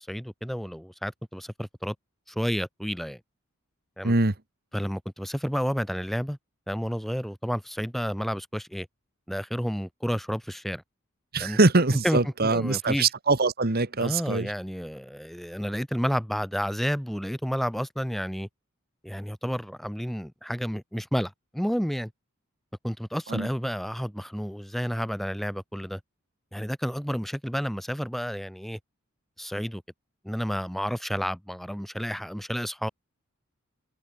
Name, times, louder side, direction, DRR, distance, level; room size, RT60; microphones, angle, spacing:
voice 1, 0.0-1.9 2.3-3.2 4.0-4.1 4.7-6.4 6.7-8.9 9.3-10.8 11.4-11.6 11.9-13.1 14.0-18.5 19.0-22.1 22.8-26.0 26.5-28.8 29.4-29.8 30.2-32.9, equal, ahead, 2.5 m, -31 dB
voice 2, 11.3-14.5 23.3-23.5, right 3 dB, 45° right, 1.5 m, -23 dB
head